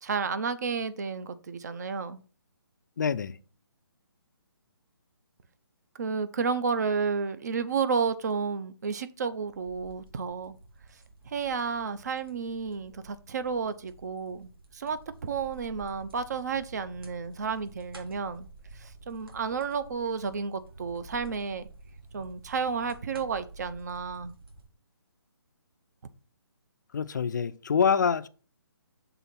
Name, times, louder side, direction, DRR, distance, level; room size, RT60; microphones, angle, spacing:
voice 1, 0.0-2.2 6.0-10.6 11.2-18.5 18.7-21.7 22.1-24.4, right 5 dB, 45° right, 0.6 m, -31 dB
voice 2, 3.0-3.4 26.9-28.3, left 6 dB, 50° left, 0.4 m, -26 dB
sound 1, 9.2-24.7, right 3 dB, 65° right, 2.4 m, -50 dB
6.9 x 3.7 x 5.9 m
hypercardioid pair, 170°, 13 cm